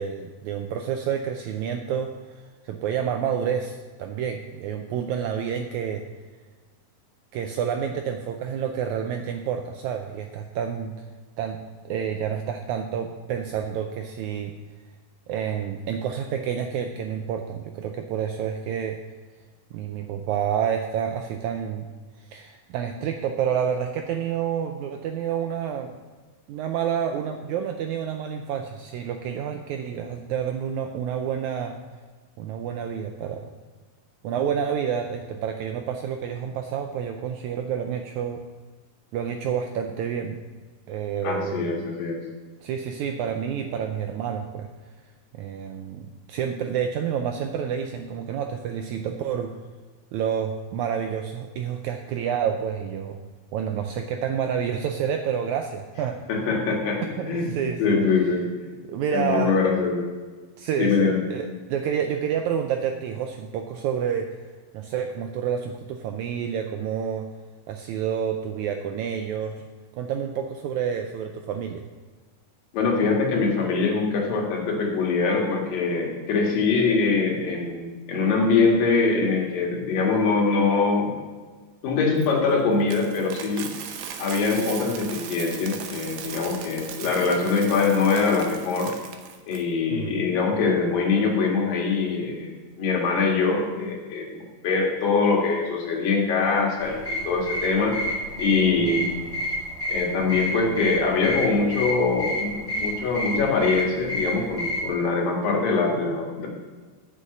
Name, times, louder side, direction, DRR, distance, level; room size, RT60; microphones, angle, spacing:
voice 1, 0.0-6.0 7.3-10.9 11.4-11.6 11.9-14.5 15.3-19.0 19.7-21.9 22.3-26.0 26.5-31.8 32.4-33.5 34.2-38.4 39.1-40.4 40.9-41.9 42.6-44.7 45.3-49.5 50.1-53.2 53.5-56.2 57.2-58.0 58.9-59.7 60.6-64.4 64.7-67.3 67.7-69.5 70.0-71.8 89.9-90.2 98.8-99.0, right 8 dB, 90° right, 5 dB, 1.7 m, -29 dB
voice 2, 41.2-42.2 56.3-57.5 57.8-58.4 59.1-60.0 60.8-61.2 72.7-81.1 81.8-83.7 84.2-88.9 89.5-92.5 92.8-97.0 97.3-98.0 98.4-99.2 99.9-106.5, left 4 dB, 80° left, -1 dB, 3.4 m, -23 dB
Coin (dropping), 82.2-89.6, right 7 dB, 70° right, 1.9 m, -38 dB
sound 1, 96.8-104.9, left 1 dB, 25° left, 1.5 m, -30 dB
7.8 x 6.5 x 7.7 m, 1.4 s
omnidirectional pair, 3.9 m